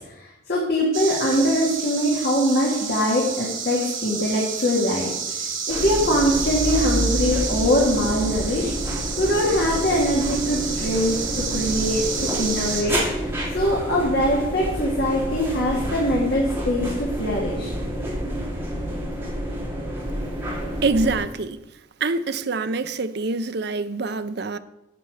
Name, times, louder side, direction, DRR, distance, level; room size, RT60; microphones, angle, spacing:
voice 1, 0.0-5.1 5.7-8.7 9.2-11.2 11.5-17.7, equal, 50° left, 2.1 m, -22 dB
sound 1, 0.9-12.8, right 6 dB, 80° right, 3.0 m, -30 dB
sound 2, 5.7-21.2, equal, 10° right, 2.6 m, -29 dB
voice 2, 20.8-21.6 22.0-24.6, right 3 dB, 55° right, 0.6 m, -25 dB
11.0 x 8.1 x 4.9 m
head